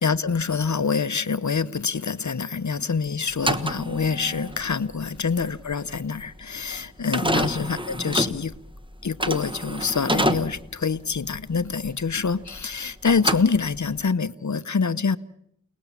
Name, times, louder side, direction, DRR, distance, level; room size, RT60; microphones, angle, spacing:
voice 1, 0.0-8.6 9.0-15.2, left 5 dB, 60° left, 0.9 m, -26 dB
sound 1, 3.3-12.7 13.0-14.0, equal, 15° right, 1.3 m, -28 dB
29.5 x 18.5 x 7.3 m
wide cardioid pair, 40°, 32 cm